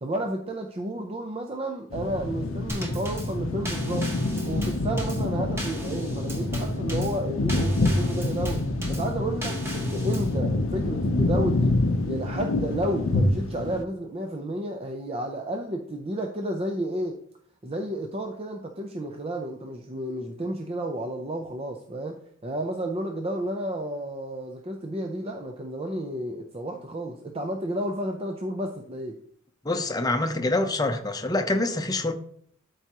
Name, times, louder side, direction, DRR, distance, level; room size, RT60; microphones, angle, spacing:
voice 1, 0.0-4.1 4.5-8.6 8.9-11.8 12.0-17.2 17.6-29.2, right 1 dB, 30° right, 0.6 m, -31 dB
sound 1, 1.9-13.8, left 2 dB, 75° left, 0.7 m, -27 dB
Drum kit / Snare drum / Bass drum, 2.7-10.4, equal, 10° right, 1.6 m, -36 dB
voice 2, 29.6-32.1, left 2 dB, 20° left, 0.7 m, -25 dB
12.5 x 4.7 x 3.0 m
head